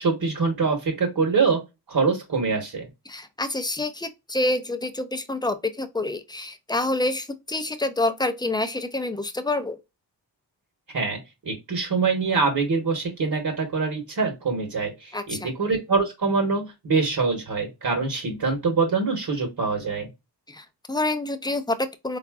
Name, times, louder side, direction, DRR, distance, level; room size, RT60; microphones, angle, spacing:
voice 1, 0.0-1.6 1.9-2.9 10.9-20.1, right 4 dB, 55° right, 1.1 m, -24 dB
voice 2, 3.1-9.8 15.1-15.5 20.5-22.2, left 2 dB, 10° left, 0.5 m, -27 dB
3.8 x 2.4 x 2.3 m
cardioid pair, 65°, 42 cm